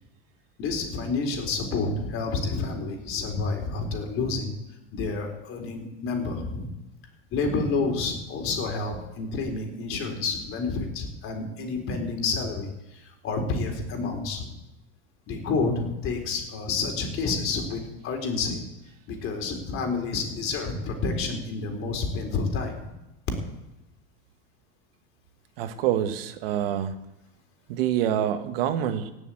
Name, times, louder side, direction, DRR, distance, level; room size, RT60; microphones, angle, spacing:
voice 1, 0.6-4.5 4.9-6.7 7.3-14.5 15.3-18.7 19.1-22.9, left 4 dB, 45° left, 3 dB, 4.2 m, -29 dB
voice 2, 25.6-27.0 27.7-29.1, right 10 dB, 75° right, 9 dB, 1.4 m, -26 dB
17.5 x 7.1 x 8.5 m, 0.95 s
supercardioid pair, 110°, 29 cm